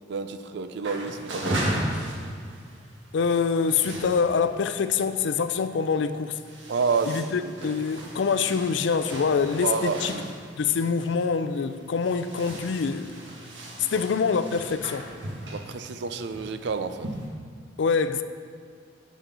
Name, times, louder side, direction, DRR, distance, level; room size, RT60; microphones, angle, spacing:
voice 1, 0.1-1.6 6.7-7.5 9.6-10.3 13.9-14.0 15.5-17.1, right 4 dB, 65° right, 0.5 m, -29 dB
sound 1, 0.8-17.3, right 1 dB, 80° right, 1.4 m, -37 dB
voice 2, 3.1-6.4 7.1-10.2 10.6-13.2 13.8-15.1 17.8-18.2, left 5 dB, 70° left, 0.4 m, -25 dB
10.0 x 6.4 x 3.9 m
head